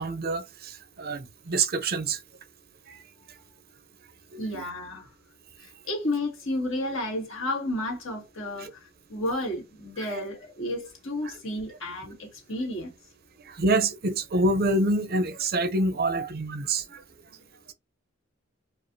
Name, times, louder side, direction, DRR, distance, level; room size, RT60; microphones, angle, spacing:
voice 1, 0.0-2.2 2.9-3.0 4.3-4.6 8.6-8.7 10.1-10.2 11.2-11.3 13.4-17.0, right 2 dB, 50° right, 0.7 m, -27 dB
voice 2, 4.4-5.1 5.6-8.7 9.1-12.9 16.0-16.3, left 1 dB, 70° left, 2.2 m, -32 dB
5.1 x 2.5 x 2.7 m
head